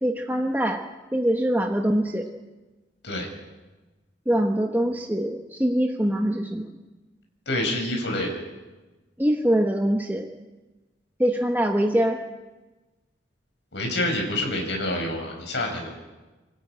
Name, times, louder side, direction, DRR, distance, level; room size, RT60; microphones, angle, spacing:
voice 1, 0.0-0.8 1.1-2.3 4.3-6.7 9.2-10.3 11.2-12.2, right 1 dB, 10° right, 2 dB, 1.1 m, -23 dB
voice 2, 7.5-8.3 13.7-16.0, left 1 dB, 80° left, 1 dB, 5.0 m, -27 dB
25.5 x 13.5 x 8.7 m, 1.2 s
head